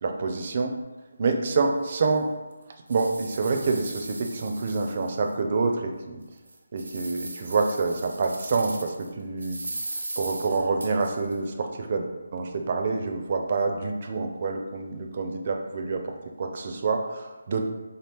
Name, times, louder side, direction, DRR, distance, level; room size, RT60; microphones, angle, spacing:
voice 1, 0.0-0.8 1.2-2.3 2.9-6.2 6.7-9.6 10.2-12.1 12.3-17.7, right 4 dB, 35° right, 4 dB, 0.4 m, -27 dB
sound 1, 1.3-1.4 1.9-2.0 2.5-5.3 5.8-5.9 6.4-9.1 9.4-11.3, right 2 dB, 85° right, 0.7 m, -38 dB
3.5 x 2.8 x 3.4 m, 1.1 s
hypercardioid pair, 170°, 0 cm